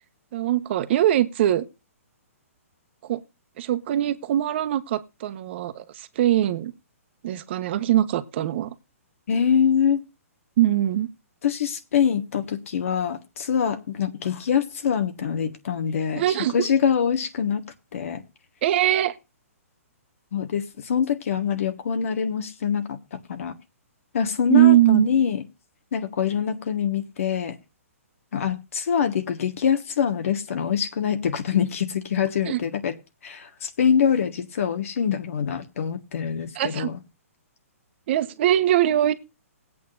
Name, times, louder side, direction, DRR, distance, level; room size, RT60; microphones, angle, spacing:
voice 1, 0.3-1.6 3.0-3.2 3.6-6.7 7.2-8.7 10.6-11.1 16.1-16.7 18.6-19.1 24.5-25.1 32.4-32.6 36.5-36.9 38.1-39.1, right 12 dB, 50° right, 1.2 m, -21 dB
voice 2, 9.3-10.0 11.4-17.7 17.9-18.2 20.3-23.5 24.1-25.4 25.9-27.6 28.3-32.9 33.2-37.0, left 7 dB, 65° left, 1.6 m, -24 dB
20.5 x 8.5 x 2.6 m
hypercardioid pair, 145°, 8 cm